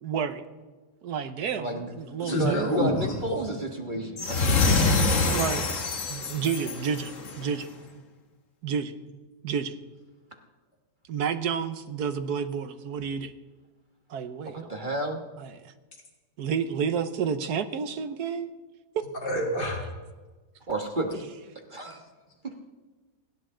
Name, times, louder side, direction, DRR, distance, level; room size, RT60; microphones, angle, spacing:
voice 1, 0.0-0.4 1.0-2.7 5.3-5.6 6.1-7.7 8.6-9.0 9.4-9.7 11.1-13.3 14.1-14.7 15.4-15.6 16.4-18.5, right 7 dB, 70° right, 10 dB, 1.3 m, -30 dB
voice 2, 1.6-2.0 2.3-4.7 14.5-15.2 20.7-21.2 21.7-22.0, right 2 dB, 30° right, 3 dB, 1.4 m, -31 dB
voice 3, 2.2-3.1 19.2-19.8, left 1 dB, 70° left, -1 dB, 3.2 m, -27 dB
sound 1, 4.2-7.5, left 3 dB, 50° left, 1.7 m, -25 dB
29.5 x 10.5 x 3.8 m, 1.3 s
omnidirectional pair, 1.8 m